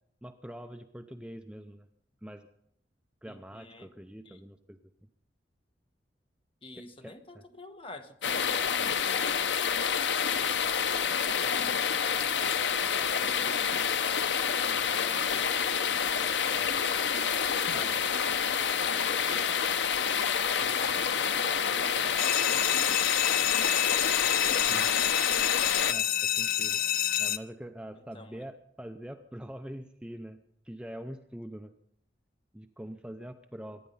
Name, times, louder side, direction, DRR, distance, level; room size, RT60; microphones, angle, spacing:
voice 1, 0.2-1.9 2.2-2.5 3.2-4.8 6.8-7.4 17.7-18.0 24.2-24.3 24.7-25.1 25.9-26.8 27.2-30.4 30.6-31.7 32.5-33.8, equal, 5° right, 7 dB, 0.6 m, -44 dB
voice 2, 3.2-3.9 4.2-4.4 6.6-9.6 11.4-13.9 14.6-19.8 20.4-23.1 23.4-23.5 27.9-28.4, left 2 dB, 30° left, 7 dB, 1.3 m, -47 dB
sound 1, 8.2-25.9, left 7 dB, 85° left, 0.8 m, -28 dB
sound 2, 22.2-27.4, left 11 dB, 55° left, 0.6 m, -28 dB
23.5 x 10.5 x 5.6 m, 0.72 s
head